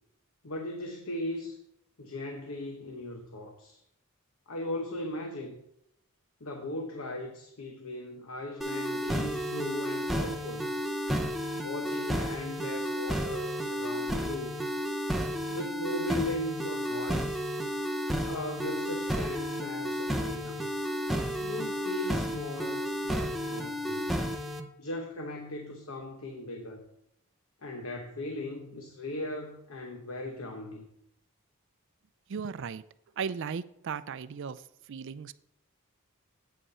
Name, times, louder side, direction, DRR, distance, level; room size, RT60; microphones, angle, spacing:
voice 1, 0.4-1.6 2.0-3.8 4.5-5.6 6.4-10.7 11.6-14.6 15.5-17.4 18.2-20.7 21.4-24.1 24.8-26.8 27.6-30.9, left 1 dB, 75° left, 4 dB, 1.0 m, -38 dB
sound 1, 8.6-24.6, equal, ahead, 0.7 m, -32 dB
voice 2, 32.3-32.8 33.2-34.6 34.9-35.3, right 6 dB, 60° right, 15 dB, 0.4 m, -36 dB
8.6 x 5.5 x 5.5 m, 0.79 s
head